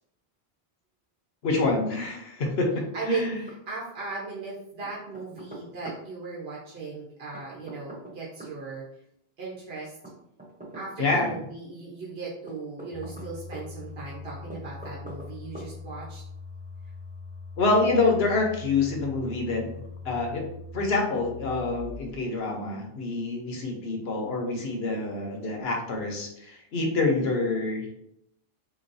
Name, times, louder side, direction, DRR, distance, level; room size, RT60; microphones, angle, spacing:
voice 1, 1.4-3.4 11.0-11.3 17.6-19.6 20.0-20.5 20.7-28.0, left 3 dB, 70° left, 1 dB, 1.0 m, -26 dB
Knock, 2.5-3.2 3.5-3.6 4.8-6.0 7.3-8.6 10.0-11.3 12.5-13.7 14.5-15.3 15.5-15.7, right 1 dB, 10° right, 0.5 m, -43 dB
voice 2, 2.9-8.8 9.4-10.0 10.7-16.2, right 4 dB, 70° right, -5 dB, 1.1 m, -37 dB
sound 1, 12.9-22.2, left 4 dB, 50° left, 0.4 m, -42 dB
4.0 x 3.0 x 2.6 m, 0.75 s
omnidirectional pair, 1.1 m